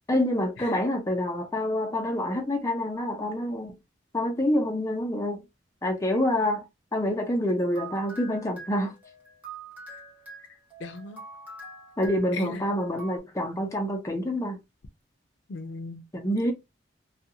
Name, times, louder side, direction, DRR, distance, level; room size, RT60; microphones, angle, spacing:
voice 1, 0.1-3.7 4.1-5.4 5.8-6.6 6.9-8.9 12.0-14.6 16.1-16.5, left 1 dB, 15° left, 0.5 m, -27 dB
sound 1, 7.3-13.2, right 3 dB, 10° right, 0.9 m, -45 dB
voice 2, 10.5-11.2 12.3-12.6 15.5-16.0, left 3 dB, 80° left, 0.4 m, -38 dB
2.5 x 2.3 x 2.7 m
head